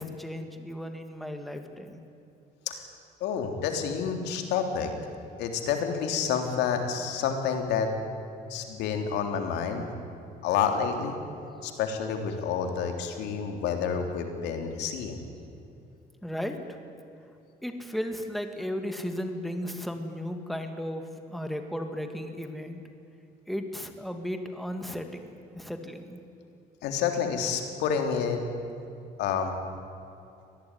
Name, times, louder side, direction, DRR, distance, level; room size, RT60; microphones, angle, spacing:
voice 1, 0.0-2.0 16.2-16.8 17.6-22.8 23.5-26.2, equal, ahead, 5 dB, 2.4 m, -35 dB
voice 2, 3.2-4.9 5.4-7.9 8.5-9.9 10.4-11.2 11.6-15.3 26.8-28.4 29.2-29.5, left 7 dB, 85° left, 5 dB, 3.3 m, -29 dB
25.0 x 18.5 x 9.8 m, 2.7 s
cardioid pair, 110°, 17 cm